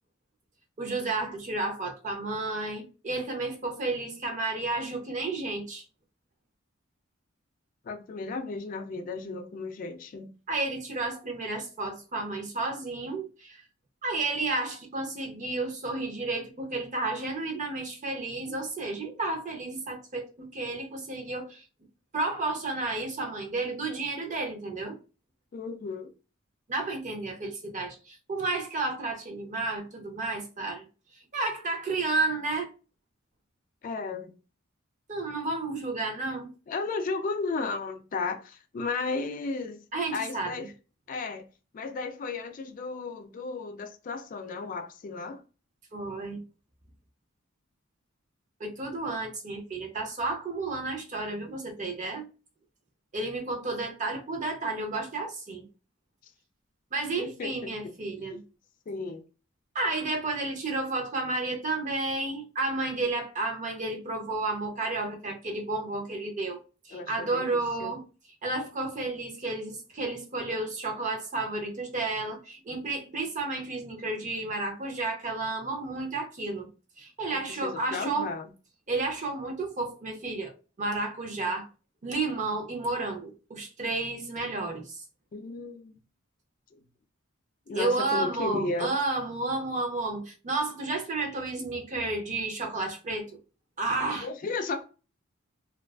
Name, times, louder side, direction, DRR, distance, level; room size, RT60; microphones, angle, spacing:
voice 1, 0.8-5.8 10.5-13.6 14.0-21.6 22.1-25.0 26.7-30.8 31.3-32.7 35.1-36.5 39.9-40.7 45.9-46.4 48.6-52.3 53.1-55.6 56.9-58.4 59.7-66.6 66.9-68.0 68.4-76.7 77.0-78.3 78.9-80.5 80.8-81.7 82.0-85.0 87.7-93.4 93.8-94.3, right 2 dB, 35° right, 0.6 m, -32 dB
voice 2, 7.8-10.3 25.5-26.1 33.8-34.3 36.7-39.8 40.1-40.7 41.1-41.5 41.7-45.4 57.2-57.7 58.3-58.4 58.9-59.2 66.9-67.9 77.3-78.5 85.3-86.0 86.7-86.8 87.7-88.9 94.2-94.8, left 3 dB, 40° left, 0.3 m, -34 dB
2.4 x 2.3 x 2.2 m
head